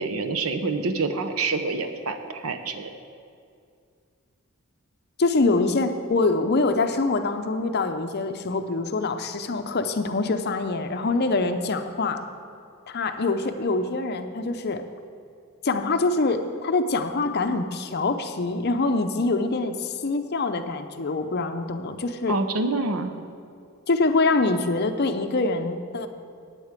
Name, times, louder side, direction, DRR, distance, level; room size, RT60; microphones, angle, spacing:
voice 1, 0.0-2.9 22.3-23.1, right 3 dB, 90° right, 8 dB, 0.8 m, -27 dB
voice 2, 5.2-12.2 12.9-14.8 15.6-22.4 23.9-26.1, left 3 dB, 50° left, 8 dB, 0.6 m, -24 dB
9.0 x 8.3 x 8.2 m, 2.3 s
head